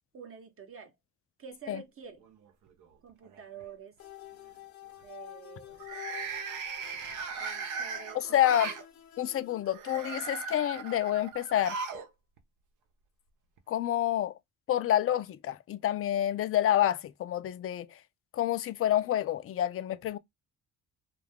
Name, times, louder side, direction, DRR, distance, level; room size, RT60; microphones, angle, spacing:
voice 1, 0.1-0.9 1.4-2.2 3.0-4.0 5.0-5.8 7.3-8.8, right 6 dB, 45° right, 0.8 m, -48 dB
sound 1, 2.2-2.9 3.2-3.6 5.7-8.8 9.7-12.1 12.4-12.5 13.6-13.7, right 5 dB, 80° right, 0.8 m, -38 dB
sound 2, 4.0-9.6, left 13 dB, 70° left, 0.9 m, -48 dB
voice 2, 8.1-8.7 9.2-11.8 13.7-14.3 14.7-17.9 18.3-20.2, left 12 dB, 45° left, 0.5 m, -28 dB
2.7 x 2.4 x 3.4 m
cardioid pair, 90°, 30 cm